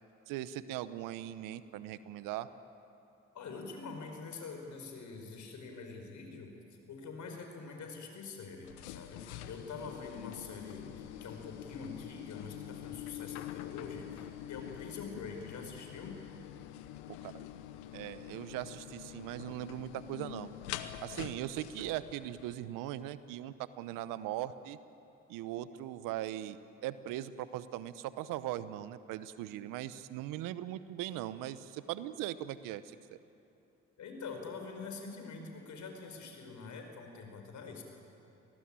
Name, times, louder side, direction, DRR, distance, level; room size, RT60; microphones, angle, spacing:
voice 1, 0.3-2.5 17.1-17.4 17.9-20.5 21.0-24.8 25.3-33.2, right 13 dB, 75° right, 14 dB, 1.0 m, -40 dB
voice 2, 3.3-6.5 6.9-16.2 34.0-37.8, left 4 dB, 60° left, 4 dB, 5.1 m, -45 dB
sound 1, 8.6-22.5, left 12 dB, 90° left, 1.0 m, -46 dB
27.0 x 19.0 x 8.9 m, 2.7 s
hypercardioid pair, 50°, 32 cm